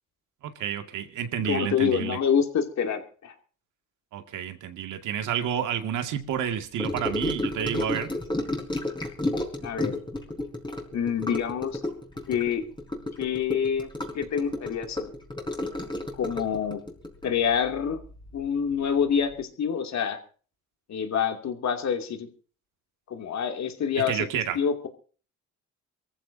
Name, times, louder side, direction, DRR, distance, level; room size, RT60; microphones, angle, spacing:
voice 1, 0.4-2.2 4.1-8.1 24.1-24.6, right 9 dB, 85° right, 6 dB, 2.1 m, -30 dB
voice 2, 1.4-3.3 9.6-10.0 10.9-11.8 12.3-12.6 13.2-15.1 16.2-16.8 17.2-18.0 18.3-20.2 20.9-22.3 23.1-24.9, left 7 dB, 65° left, 5 dB, 2.6 m, -27 dB
Gurgling / Sink (filling or washing) / Trickle dribble, 6.8-18.5 18.7-19.0 19.3-19.4, left 1 dB, 15° left, 4.5 m, -32 dB
24.5 x 14.5 x 2.7 m, 0.40 s
cardioid pair, 90°, 30 cm